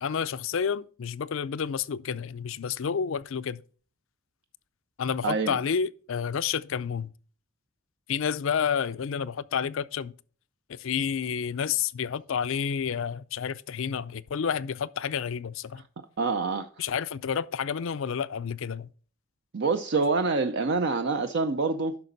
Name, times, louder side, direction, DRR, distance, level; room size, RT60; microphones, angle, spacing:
voice 1, 0.0-3.6 5.0-7.1 8.1-10.1 10.7-15.8 16.8-18.9, left 7 dB, 65° left, 0.4 m, -30 dB
voice 2, 5.2-5.6 16.2-16.7 19.5-22.0, right 4 dB, 55° right, 0.5 m, -26 dB
10.5 x 6.0 x 3.9 m
head